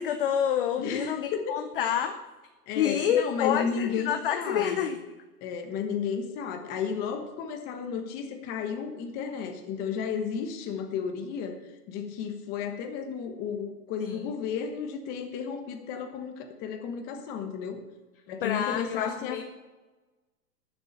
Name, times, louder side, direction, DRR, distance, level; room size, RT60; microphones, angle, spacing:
voice 1, 0.0-2.2 2.8-5.0 14.0-14.3 18.4-19.5, left 9 dB, 35° left, 8 dB, 0.6 m, -28 dB
voice 2, 0.8-1.6 2.7-4.9 5.4-11.6 11.9-17.8 18.3-19.4, left 6 dB, 20° left, 5 dB, 1.1 m, -33 dB
12.5 x 7.2 x 8.6 m, 1.2 s
hypercardioid pair, 170°, 48 cm